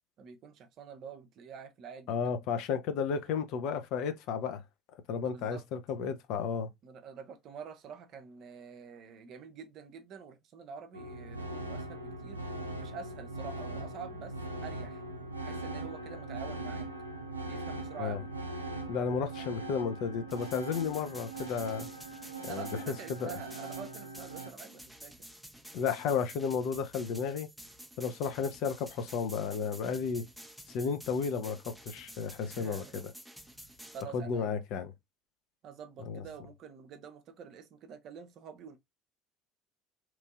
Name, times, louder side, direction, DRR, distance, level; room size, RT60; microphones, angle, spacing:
voice 1, 0.2-2.4 5.2-5.6 6.8-12.4 12.8-14.3 14.6-15.0 15.4-16.9 17.5-18.3 22.5-25.1 32.5-33.0 33.9-34.6 35.6-38.8, right 6 dB, 45° right, 0.6 m, -47 dB
voice 2, 2.1-4.6 5.1-6.7 18.0-18.2 18.9-21.9 22.4-22.7 23.1-23.3 25.7-27.5 28.0-30.2 30.7-33.0 34.1-34.9 36.1-36.2, left 6 dB, 55° left, 0.5 m, -33 dB
sound 1, 10.9-24.5, right 2 dB, 85° right, 0.4 m, -41 dB
sound 2, 20.3-34.0, equal, ahead, 0.6 m, -51 dB
3.0 x 2.6 x 2.3 m
figure-of-eight pair, 65°, 0 cm